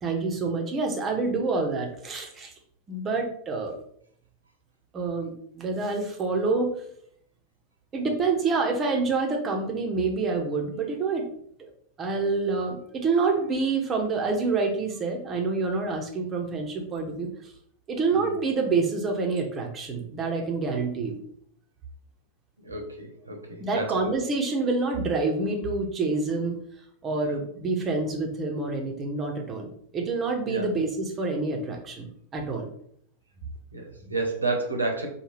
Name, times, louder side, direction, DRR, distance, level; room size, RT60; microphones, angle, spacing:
voice 1, 0.0-2.5 2.9-3.7 4.9-6.7 7.9-11.3 11.6-11.7 12.0-17.3 17.9-21.2 23.6-26.6 27.0-29.7 29.9-32.7, right 3 dB, 25° right, 2 dB, 0.7 m, -27 dB
voice 2, 22.6-23.9 27.3-27.4 30.5-30.7 33.7-35.1, right 3 dB, 80° right, 2 dB, 0.8 m, -30 dB
4.5 x 2.3 x 3.3 m, 0.67 s
figure-of-eight pair, 90°, 0 cm